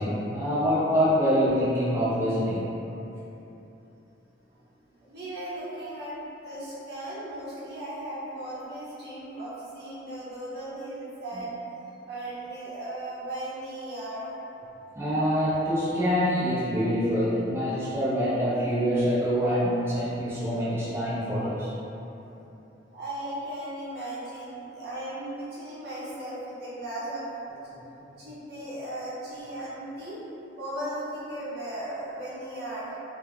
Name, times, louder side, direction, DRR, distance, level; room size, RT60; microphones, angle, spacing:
voice 1, 0.0-2.7 6.5-6.6 15.0-21.7, equal, 15° right, -12 dB, 0.5 m, -25 dB
voice 2, 5.0-11.6 12.1-14.3 22.9-27.3 28.2-30.2 30.6-33.0, right 1 dB, 60° right, -9 dB, 0.8 m, -36 dB
2.2 x 2.2 x 3.5 m, 3.0 s
head